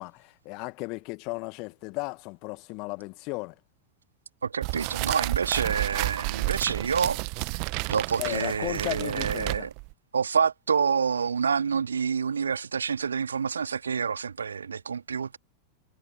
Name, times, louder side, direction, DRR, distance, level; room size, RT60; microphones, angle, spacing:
voice 1, 0.0-3.5 8.2-9.7, left 27 dB, 45° left, 1.7 m, -35 dB
voice 2, 4.4-7.2 7.9-9.7 10.1-15.4, right 6 dB, 70° right, 2.5 m, -27 dB
sound 1, 4.6-9.9, right 36 dB, 45° right, 1.3 m, -31 dB
figure-of-eight pair, 90°, 0 cm